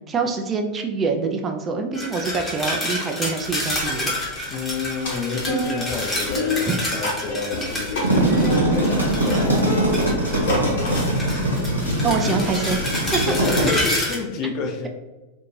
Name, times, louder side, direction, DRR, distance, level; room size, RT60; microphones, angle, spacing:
voice 1, 0.1-4.1 6.7-6.8 12.0-12.8 13.1-13.3, right 4 dB, 20° right, 4 dB, 0.3 m, -25 dB
sound 1, 1.9-10.5 10.9-14.2, left 1 dB, 15° left, 0.9 m, -29 dB
sound 2, 3.7-13.9, left 2 dB, 60° left, 1.2 m, -30 dB
voice 2, 4.5-11.1 13.2-14.9, left 5 dB, 40° left, 3 dB, 0.4 m, -30 dB
sound 3, 7.8-13.6, right 1 dB, 85° right, 0.8 m, -22 dB
2.5 x 2.4 x 3.1 m, 1.1 s
figure-of-eight pair, 90°, 0 cm